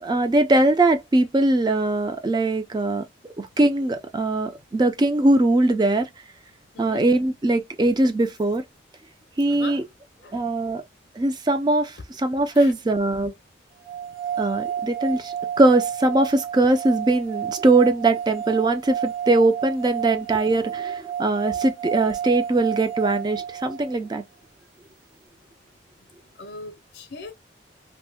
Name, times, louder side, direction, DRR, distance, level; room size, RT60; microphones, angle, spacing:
voice 1, 0.0-3.0 3.4-6.1 6.8-8.6 9.4-9.8 10.3-10.8 11.2-13.3 14.4-24.2, right 2 dB, 20° right, 0.3 m, -21 dB
voice 2, 6.7-7.1 9.5-9.8 10.2-10.5 12.5-12.7 26.4-27.3, left 3 dB, 60° left, 0.5 m, -39 dB
sound 1, 13.8-24.0, right 9 dB, 85° right, 1.2 m, -31 dB
2.6 x 2.1 x 3.3 m
head